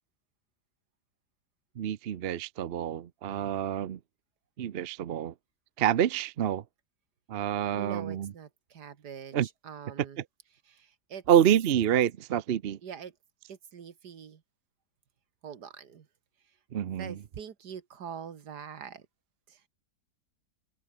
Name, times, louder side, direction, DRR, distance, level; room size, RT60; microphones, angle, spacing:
voice 1, 1.8-4.0 4.6-5.3 5.8-6.6 7.3-8.3 9.3-9.5 11.3-12.8 16.7-17.2, right 10 dB, 55° right, 0.7 m, -27 dB
voice 2, 7.8-10.2 10.7-11.2 12.8-13.1 13.5-14.4 15.4-16.1 17.0-19.0 19.5-19.6, right 7 dB, 75° right, 2.1 m, -44 dB
open air
omnidirectional pair, 1.8 m